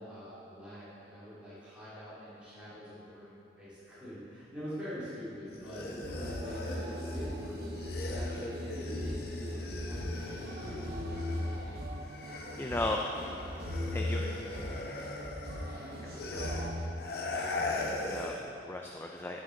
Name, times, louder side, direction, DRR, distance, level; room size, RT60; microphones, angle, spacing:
voice 1, 0.0-11.5, equal, 5° right, -12 dB, 2.3 m, -45 dB
sound 1, 5.5-11.7 12.0-18.5, left 2 dB, 55° left, 0.9 m, -40 dB
sound 2, 6.0-16.9, left 1 dB, 55° right, 1.0 m, -38 dB
voice 2, 12.6-13.0 13.9-14.4 16.0-16.7 17.3-19.4, left 2 dB, 15° left, 1 dB, 0.3 m, -37 dB
11.0 x 7.7 x 3.7 m, 2.7 s
head